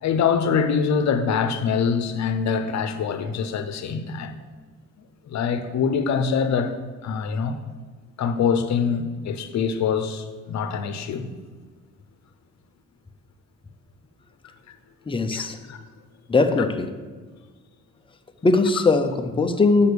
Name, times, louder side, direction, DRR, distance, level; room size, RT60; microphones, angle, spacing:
voice 1, 0.0-4.4 5.3-6.7 7.0-7.6 8.2-11.3 15.3-15.8, left 6 dB, 60° left, 0.8 m, -24 dB
voice 2, 15.1-15.6 16.3-16.9 18.4-19.9, left 3 dB, 15° left, 0.6 m, -20 dB
6.3 x 5.5 x 6.8 m
cardioid pair, 130°, 30 cm